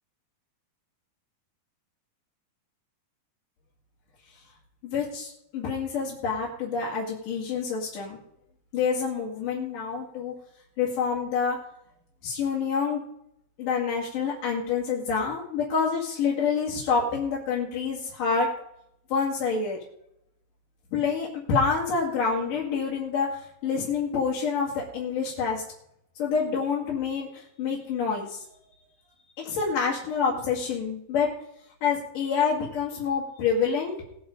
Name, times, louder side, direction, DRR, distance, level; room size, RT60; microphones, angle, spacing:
voice 1, 4.8-8.2 8.7-10.3 10.8-11.6 12.2-13.0 13.6-18.5 19.1-19.8 20.9-23.3 23.6-25.6 26.2-28.4 29.4-31.3 31.8-34.0, left 5 dB, 60° left, -5 dB, 3.7 m, -27 dB
20.0 x 7.2 x 5.2 m, 0.76 s
omnidirectional pair, 4.3 m